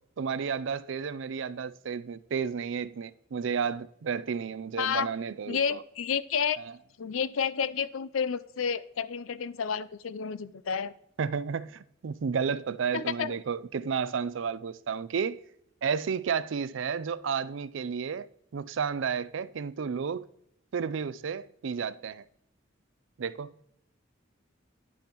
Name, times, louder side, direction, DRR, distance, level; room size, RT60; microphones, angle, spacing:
voice 1, 0.2-5.8 6.6-6.7 11.2-15.4 15.8-18.3 18.5-20.2 20.7-22.2 23.2-23.5, right 6 dB, 65° right, 0.4 m, -32 dB
voice 2, 4.8-5.1 5.5-6.6 7.0-10.9 12.9-13.4, left 7 dB, 80° left, 0.5 m, -30 dB
10.0 x 8.4 x 3.0 m
head